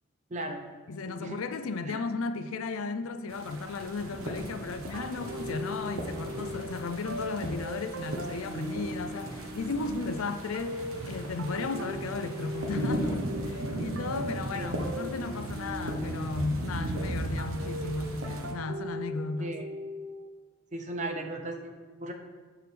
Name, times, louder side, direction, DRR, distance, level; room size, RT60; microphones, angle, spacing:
voice 1, 0.3-0.6 1.1-1.4 1.9-2.0 14.5-14.7 19.4-19.7 20.7-22.1, right 1 dB, 35° right, 0.7 m, -37 dB
voice 2, 0.9-19.6, left 3 dB, 85° left, 0.5 m, -35 dB
sound 1, 3.3-18.5, right 1 dB, 85° right, 1.0 m, -37 dB
sound 2, 4.9-20.3, equal, 65° right, 0.6 m, -40 dB
sound 3, 5.0-13.2, equal, 20° left, 1.3 m, -48 dB
14.0 x 4.8 x 3.4 m
head